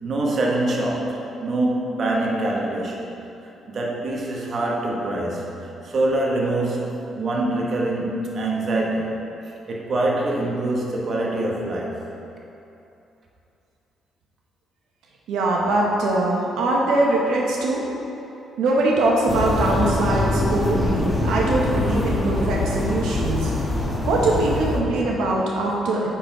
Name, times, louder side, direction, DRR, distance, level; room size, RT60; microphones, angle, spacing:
voice 1, 0.0-3.1 3.7-9.3 9.7-12.0, right 2 dB, 50° right, -2 dB, 1.1 m, -24 dB
voice 2, 15.3-17.8 18.6-23.5 24.0-26.1, right 2 dB, 85° right, -3 dB, 0.9 m, -22 dB
sound 1, 19.3-24.8, left 2 dB, 10° left, 1.1 m, -24 dB
8.7 x 3.9 x 4.6 m, 2.8 s
cardioid pair, 90°, 0 cm